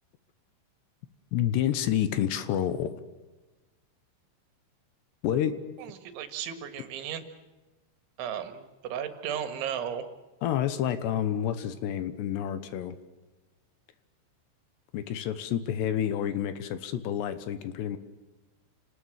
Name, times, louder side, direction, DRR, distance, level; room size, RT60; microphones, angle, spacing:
voice 1, 1.3-2.9 5.2-5.6 10.4-13.0 14.9-18.0, left 10 dB, 75° left, 12 dB, 3.1 m, -29 dB
voice 2, 5.8-7.2 8.2-10.1, right 9 dB, 80° right, 9 dB, 4.1 m, -35 dB
27.5 x 19.5 x 7.4 m, 1.2 s
omnidirectional pair, 5.4 m